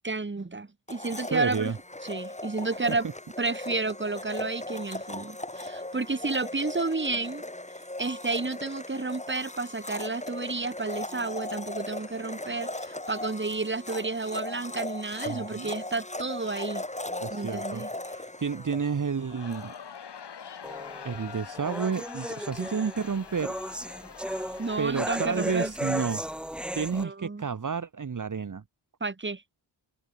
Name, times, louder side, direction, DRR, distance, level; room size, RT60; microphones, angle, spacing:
voice 1, 0.0-1.7 2.0-3.1 3.4-7.4 8.0-16.8 17.3-17.9 24.6-25.7 26.9-27.5 29.0-29.4, right 3 dB, 25° right, 2.2 m, -31 dB
Domestic sounds home sounds, 0.9-19.7, left 1 dB, 15° left, 4.8 m, -38 dB
voice 2, 1.2-1.8 15.3-15.7 17.2-19.7 21.0-23.5 24.8-26.2 26.7-28.6, right 6 dB, 40° right, 1.5 m, -31 dB
Crowd, 19.1-26.4, left 7 dB, 60° left, 2.0 m, -44 dB
sound 1, 20.6-27.0, equal, ahead, 1.3 m, -35 dB
wide cardioid pair, 80°, 46 cm